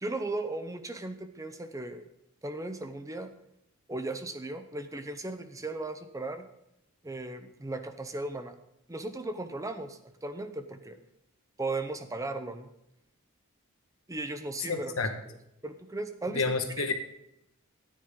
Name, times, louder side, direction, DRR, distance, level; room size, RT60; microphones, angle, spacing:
voice 1, 0.0-2.0 2.4-3.3 3.9-6.5 7.0-8.6 8.9-11.0 11.6-12.7 14.1-14.9 15.6-16.4 16.8-16.9, right 2 dB, 15° right, 9 dB, 0.7 m, -36 dB
voice 2, 14.6-15.1 16.3-16.9, left 4 dB, 75° left, 6 dB, 1.5 m, -29 dB
14.0 x 9.5 x 3.8 m, 0.82 s
head